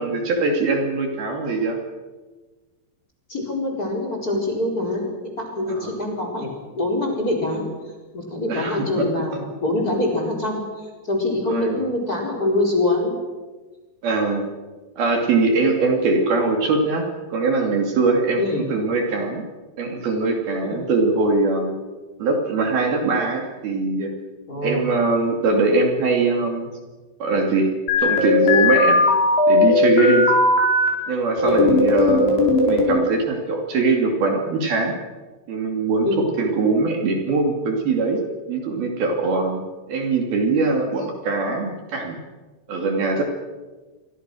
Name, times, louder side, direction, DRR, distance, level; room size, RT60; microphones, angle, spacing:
voice 1, 0.0-1.8 5.7-6.0 8.5-9.1 11.5-11.8 14.0-14.5 15.0-19.5 19.8-21.8 22.2-24.1 24.6-26.7 27.2-27.7 28.0-29.0 29.5-30.3 31.1-35.0 35.5-38.2 38.5-39.6 39.9-42.2 42.7-43.2, right 3 dB, 60° right, 3 dB, 4.2 m, -22 dB
voice 2, 3.3-7.6 8.1-9.3 9.6-13.2 18.4-18.7 20.6-20.8 24.5-24.8 31.4-31.6 36.0-36.2, left 2 dB, 20° left, 1 dB, 4.8 m, -24 dB
sound 1, 27.9-30.9 31.4-33.0, left 2 dB, 70° left, 6.9 m, -17 dB
27.5 x 23.5 x 6.3 m, 1.3 s
omnidirectional pair, 5.3 m